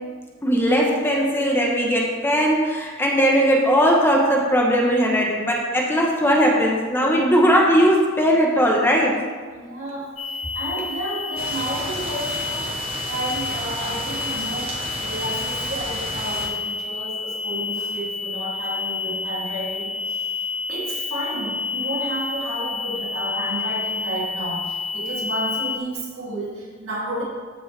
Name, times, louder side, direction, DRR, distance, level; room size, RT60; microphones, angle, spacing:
voice 1, 0.4-9.2, equal, 10° left, -1 dB, 0.9 m, -19 dB
voice 2, 9.5-12.8 13.1-20.4 20.7-27.2, right 1 dB, 70° right, -5 dB, 2.6 m, -31 dB
sound 1, 10.2-25.8, left 4 dB, 30° left, 0.4 m, -29 dB
sound 2, 11.4-16.5, right 1 dB, 25° right, 1.5 m, -32 dB
13.5 x 5.3 x 3.4 m, 1.5 s
head